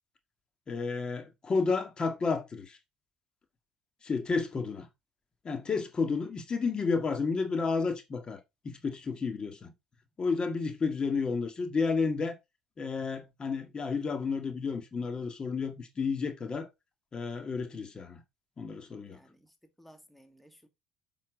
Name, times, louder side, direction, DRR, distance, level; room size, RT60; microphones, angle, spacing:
voice 1, 0.7-2.8 4.0-4.9 5.4-9.7 10.2-12.4 12.8-16.7 17.1-18.2 18.6-19.2, left 4 dB, 35° left, 1.9 m, -31 dB
voice 2, 19.0-20.7, equal, 5° left, 1.9 m, -58 dB
7.6 x 5.9 x 5.0 m
supercardioid pair, 75°, 3 cm